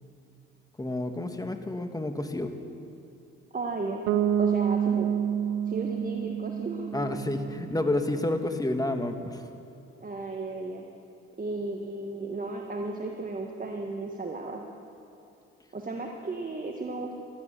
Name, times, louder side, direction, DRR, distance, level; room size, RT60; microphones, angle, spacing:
voice 1, 0.8-2.5 6.9-9.5, left 1 dB, 10° left, 6 dB, 1.6 m, -30 dB
voice 2, 3.5-4.0 4.4-5.1 5.7-7.2 10.0-10.8 11.4-14.6 15.7-17.1, right 3 dB, 30° right, 2 dB, 1.5 m, -34 dB
Bass guitar, 4.1-7.9, right 9 dB, 80° right, 0.8 m, -28 dB
15.0 x 12.5 x 6.8 m, 2.7 s
hypercardioid pair, 60°, 29 cm